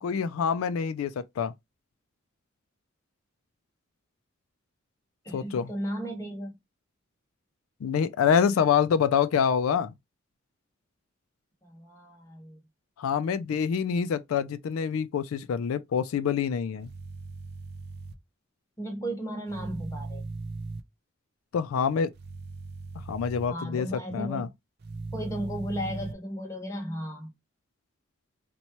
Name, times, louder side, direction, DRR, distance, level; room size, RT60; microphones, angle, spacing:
voice 1, 0.0-1.5 5.3-5.7 7.8-9.9 13.0-16.9 21.5-22.1 23.1-24.5, left 7 dB, 85° left, 0.3 m, -26 dB
voice 2, 5.2-6.5 11.6-12.6 18.8-20.3 23.5-24.5 25.1-27.3, equal, 15° left, 1.0 m, -35 dB
sound 1, 16.8-18.1 19.5-20.8 22.1-23.5 24.8-26.1, right 3 dB, 50° right, 0.4 m, -38 dB
4.1 x 2.2 x 2.9 m
head